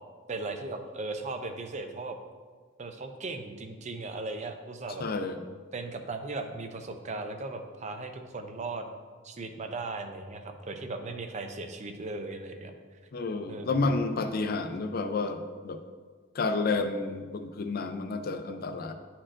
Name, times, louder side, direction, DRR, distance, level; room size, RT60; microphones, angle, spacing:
voice 1, 0.3-2.2 2.8-5.1 5.7-8.9 9.2-12.7 13.5-13.8, right 3 dB, 35° right, 6 dB, 0.5 m, -37 dB
voice 2, 5.0-5.4 13.1-15.8 16.3-18.9, left 3 dB, 50° left, 8 dB, 0.5 m, -30 dB
9.7 x 4.4 x 2.5 m, 1.5 s
head